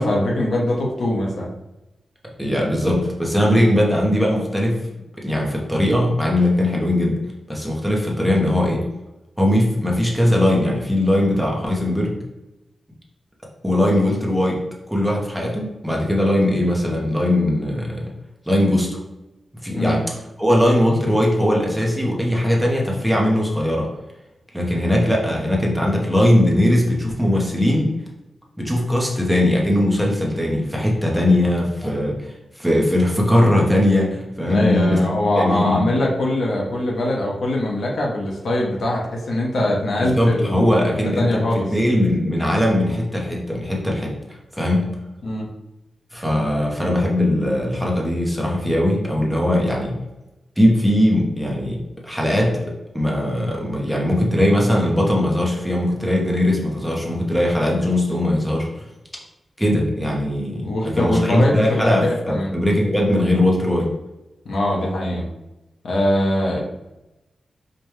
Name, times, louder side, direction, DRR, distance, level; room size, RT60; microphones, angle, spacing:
voice 1, 0.0-1.5 19.8-20.0 34.4-40.7 41.2-41.6 45.2-45.5 60.6-62.5 64.4-65.2 65.8-66.6, left 1 dB, 75° left, -2 dB, 0.8 m, -22 dB
voice 2, 2.4-4.8 5.2-7.2 7.5-8.8 9.4-12.1 13.6-18.1 18.5-18.9 19.6-20.0 20.4-23.9 24.5-27.9 28.6-32.2 32.6-35.0 35.3-35.9 40.0-44.1 44.5-44.9 46.1-50.0 50.6-58.7 59.6-63.9, left 1 dB, ahead, -2 dB, 0.8 m, -20 dB
5.0 x 2.2 x 3.1 m, 0.98 s
wide cardioid pair, 125°, 0 cm